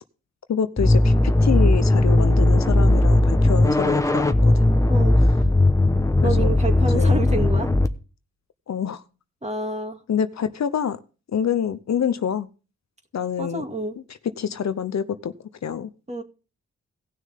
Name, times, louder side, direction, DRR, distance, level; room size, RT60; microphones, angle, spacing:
voice 1, 0.5-1.1 1.4-4.5 6.2-6.5 6.9-7.2 8.7-9.0 10.1-11.0 11.3-12.5 13.1-13.6 14.4-15.3 15.6-15.9, left 8 dB, 70° left, 0.8 m, -26 dB
sound 1, 0.8-7.9, left 1 dB, 10° left, 0.9 m, -18 dB
sound 2, 2.8-5.2, left 4 dB, 75° right, 4.9 m, -40 dB
voice 2, 4.9-5.2 6.2-7.7 9.4-10.0 13.4-14.0 16.1-16.2, right 2 dB, 25° right, 2.3 m, -28 dB
17.5 x 6.5 x 3.6 m
cardioid pair, 70°, 29 cm